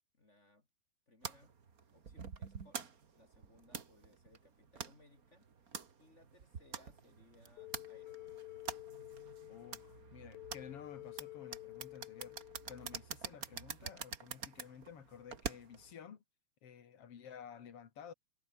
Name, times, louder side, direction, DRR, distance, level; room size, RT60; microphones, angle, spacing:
voice 1, 0.1-0.7 1.1-1.5 1.9-2.8 3.1-5.5 6.0-8.4, left 1 dB, 20° left, 2.4 m, -66 dB
sound 1, 1.2-15.9, right 6 dB, 35° right, 1.5 m, -47 dB
sound 2, 7.6-13.1, left 20 dB, 85° left, 2.3 m, -51 dB
voice 2, 9.5-12.4 12.7-16.2 16.6-18.1, left 8 dB, 50° left, 2.5 m, -53 dB
omnidirectional pair, 4.0 m